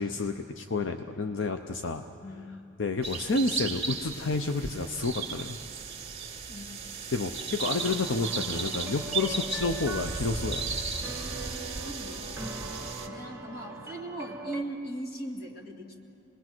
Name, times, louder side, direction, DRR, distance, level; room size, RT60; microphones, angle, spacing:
voice 1, 0.0-2.0 2.8-5.6 7.1-10.8 13.6-13.7, left 3 dB, 85° left, 7 dB, 0.7 m, -30 dB
voice 2, 2.2-2.6 6.5-6.7 11.8-16.0, right 1 dB, 55° left, 2 dB, 2.2 m, -39 dB
sound 1, 3.0-13.1, right 5 dB, 35° right, 2.0 m, -35 dB
sound 2, 7.7-14.6, right 2 dB, 15° right, 1.7 m, -41 dB
27.0 x 20.5 x 6.1 m, 2.9 s
head